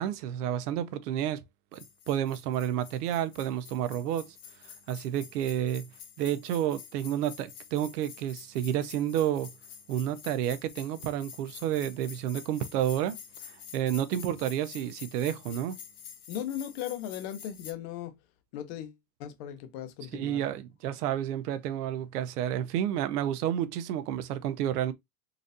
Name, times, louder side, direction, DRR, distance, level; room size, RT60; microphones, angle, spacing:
voice 1, 0.0-1.4 1.7-4.4 4.6-5.9 6.2-9.5 9.9-13.2 13.4-15.8 20.1-24.9, right 11 dB, 75° right, 0.7 m, -30 dB
sound 1, 1.7-17.7, left 8 dB, 70° left, 1.1 m, -48 dB
voice 2, 16.3-18.2 18.5-20.4, left 10 dB, 40° left, 0.6 m, -37 dB
4.0 x 2.5 x 2.5 m
supercardioid pair, 165°, 47 cm